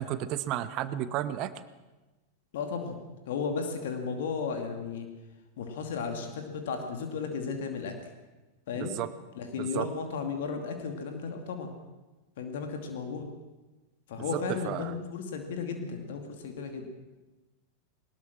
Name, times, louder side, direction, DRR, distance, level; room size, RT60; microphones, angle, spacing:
voice 1, 0.0-1.5 8.7-9.1 9.6-9.9 14.3-15.0, right 12 dB, 40° right, 14 dB, 1.2 m, -32 dB
voice 2, 2.5-3.0 3.3-5.1 5.6-8.1 8.7-8.9 9.3-11.7 12.4-13.3 14.1-16.9, left 5 dB, 55° left, 5 dB, 2.6 m, -34 dB
21.0 x 20.0 x 6.3 m, 1.1 s
figure-of-eight pair, 90°, 0 cm